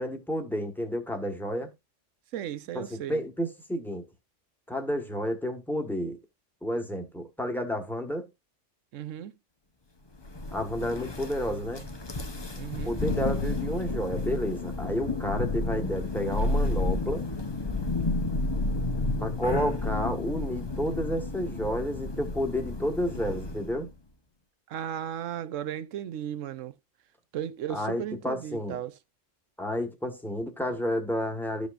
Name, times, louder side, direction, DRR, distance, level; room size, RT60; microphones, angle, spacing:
voice 1, 0.0-1.7 2.7-4.1 4.7-6.2 6.6-8.3 10.5-11.8 12.8-17.2 19.2-23.9 27.7-28.8 29.6-31.7, equal, ahead, 1.4 m, -31 dB
voice 2, 2.3-3.2 8.9-9.3 12.5-13.0 24.7-26.7 27.3-29.0, right 10 dB, 90° right, 1.0 m, -35 dB
Thunder, 10.2-23.8, left 2 dB, 25° left, 0.8 m, -31 dB
13.0 x 5.2 x 2.5 m
omnidirectional pair, 1.3 m